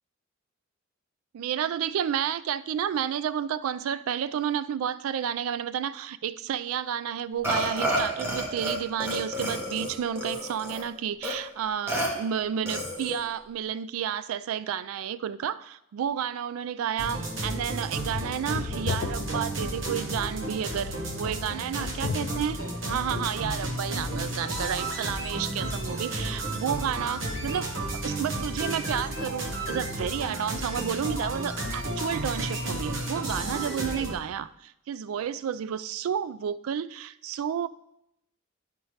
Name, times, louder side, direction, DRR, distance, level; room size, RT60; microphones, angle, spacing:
voice 1, 1.3-22.6 22.8-37.7, right 8 dB, 90° right, 16 dB, 0.3 m, -31 dB
Burping eructation, 7.4-8.8 9.0-10.8 11.2-11.3 11.9-12.1 12.7-13.2, equal, 10° right, 1.1 m, -30 dB
sound 1, 17.0-34.1, right 1 dB, 65° right, 1.2 m, -32 dB
sound 2, 18.1-25.9, left 5 dB, 50° left, 0.3 m, -39 dB
10.0 x 5.2 x 3.1 m, 0.82 s
head